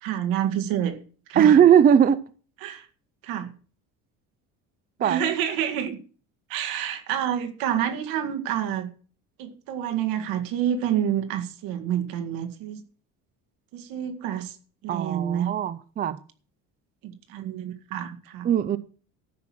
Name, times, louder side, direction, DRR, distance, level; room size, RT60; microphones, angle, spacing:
voice 1, 0.0-1.0 1.3-1.6 2.6-2.9 3.2-3.5 5.0-6.0 6.5-8.9 9.4-12.8 13.7-14.6 14.8-15.6 17.0-18.5, right 10 dB, 80° right, 2.1 m, -28 dB
voice 2, 1.4-2.2 5.0-5.3 14.9-16.2 18.4-18.8, right 8 dB, 25° right, 0.6 m, -19 dB
13.5 x 6.0 x 7.6 m
cardioid pair, 145°, 33 cm